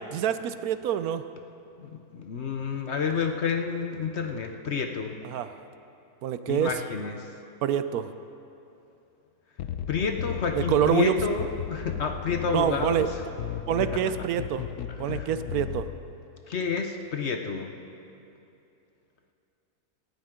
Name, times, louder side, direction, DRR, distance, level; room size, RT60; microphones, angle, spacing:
voice 1, 0.1-1.2 5.2-5.5 6.2-6.7 7.6-8.1 10.6-11.2 12.5-13.1 13.7-14.6 15.0-15.8, right 10 dB, 75° right, 11 dB, 1.0 m, -26 dB
voice 2, 1.8-5.2 6.5-7.3 9.9-13.1 13.9-14.0 15.0-15.3 16.5-17.7, left 5 dB, 55° left, 5 dB, 0.9 m, -29 dB
sound 1, 9.6-16.0, left 10 dB, 90° left, 1.2 m, -35 dB
18.0 x 14.0 x 3.7 m, 2.7 s
omnidirectional pair, 1.6 m